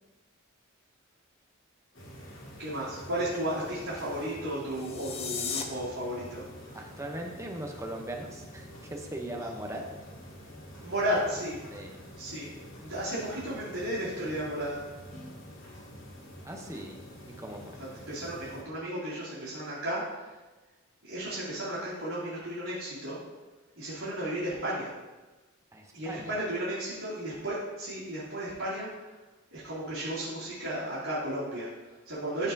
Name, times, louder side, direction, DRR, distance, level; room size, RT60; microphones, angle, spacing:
sound 1, 1.9-18.6, equal, 75° left, 1.9 m, -47 dB
voice 1, 2.6-6.8 10.8-11.6 12.2-12.5 12.8-14.9 18.1-20.4 21.0-23.2 23.8-25.0 25.9-29.1 29.5-32.5, right 1 dB, 70° right, -11 dB, 2.3 m, -34 dB
sound 2, 4.7-5.6, left 6 dB, 30° left, 0.5 m, -35 dB
voice 2, 6.7-9.8 11.7-12.0 16.4-17.0 17.4-17.8 25.7-26.4, right 1 dB, 15° right, 1 dB, 0.7 m, -39 dB
12.5 x 4.2 x 2.7 m, 1.2 s
head